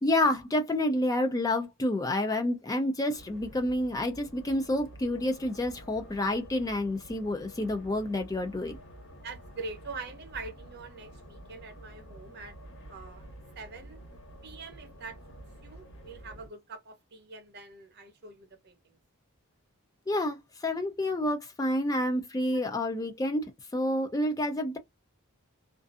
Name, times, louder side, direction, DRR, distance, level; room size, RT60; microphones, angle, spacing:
voice 1, 0.0-8.8 20.1-23.5 23.7-24.8, left 1 dB, 15° left, 0.3 m, -29 dB
sound 1, 3.1-16.5, right 1 dB, 55° left, 1.2 m, -49 dB
voice 2, 9.2-12.5 12.9-13.2 13.6-14.0 14.4-19.0 22.5-22.6, right 4 dB, 50° right, 0.7 m, -44 dB
2.5 x 2.4 x 2.3 m
head